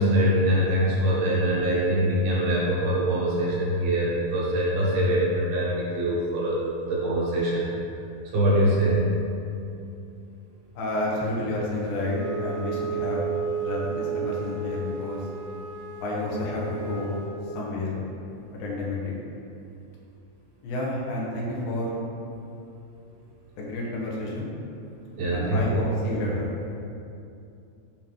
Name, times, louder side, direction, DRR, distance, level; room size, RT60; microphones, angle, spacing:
voice 1, 0.0-6.6 6.9-7.7 8.3-9.0 25.2-25.6 26.1-26.3, right 1 dB, 75° right, -6 dB, 3.2 m, -23 dB
voice 2, 10.8-13.3 13.6-15.2 16.0-17.2 17.5-17.9 18.6-19.2 20.6-21.9 23.6-24.5 25.3-26.5, left 2 dB, 75° left, -4 dB, 2.6 m, -30 dB
Wind instrument woodwind instrument, 12.0-17.3, right 6 dB, 50° right, 2.6 m, -33 dB
7.5 x 3.7 x 5.8 m, 2.7 s
omnidirectional pair, 4.5 m